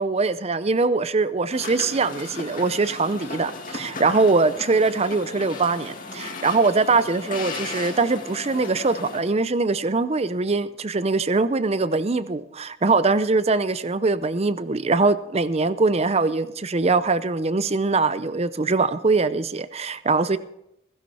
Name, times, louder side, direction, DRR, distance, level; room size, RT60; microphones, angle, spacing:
voice 1, 0.0-20.4, right 3 dB, 35° right, 15 dB, 0.6 m, -22 dB
sound 1, 1.5-9.2, left 3 dB, 45° left, 2.1 m, -36 dB
16.0 x 15.5 x 4.2 m, 0.82 s
head